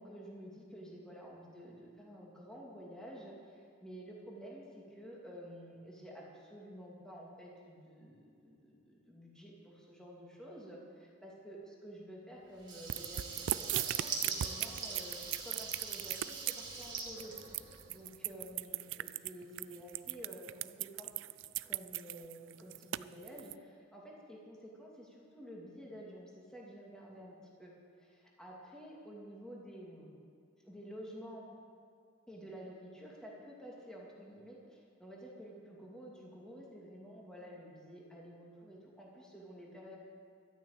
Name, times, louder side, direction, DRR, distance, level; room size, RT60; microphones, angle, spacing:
voice 1, 0.0-17.6 17.9-21.1 21.6-27.7 28.0-30.1 30.6-31.5 32.3-40.0, equal, 5° left, -4 dB, 2.5 m, -51 dB
Water tap faucet / Liquid, 12.6-18.1, right 3 dB, 25° right, 2.2 m, -43 dB
sound 1, 12.9-23.5, right 14 dB, 70° right, 0.3 m, -38 dB
13.0 x 9.2 x 8.6 m, 2.4 s
head